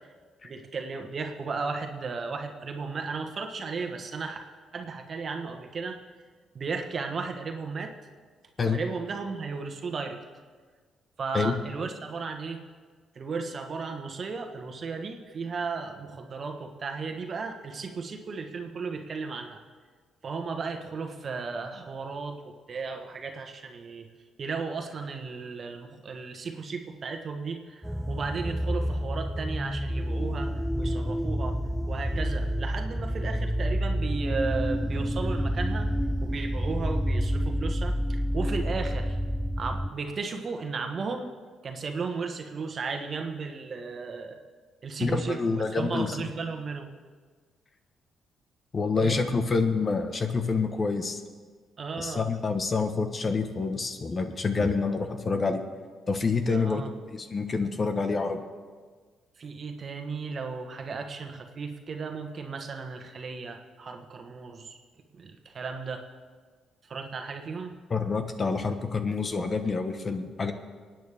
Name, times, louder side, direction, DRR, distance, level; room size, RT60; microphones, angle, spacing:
voice 1, 0.4-4.4 4.7-6.0 6.5-7.9 8.6-10.2 11.2-12.6 13.1-19.6 20.2-24.1 24.4-31.6 31.9-35.9 36.2-39.2 39.6-41.3 41.6-44.4 44.8-46.9 49.0-49.2 51.8-52.2 56.5-56.9 59.4-64.8 65.1-66.0 66.8-67.7, right 4 dB, 45° right, 4 dB, 1.4 m, -35 dB
sound 1, 27.8-39.9, equal, ahead, 0.5 m, -29 dB
voice 2, 45.0-46.2 48.7-51.2 52.0-55.6 56.1-58.4 67.9-70.5, left 4 dB, 35° left, 7 dB, 1.2 m, -27 dB
25.5 x 9.3 x 3.6 m, 1.5 s
cardioid pair, 90°, 0 cm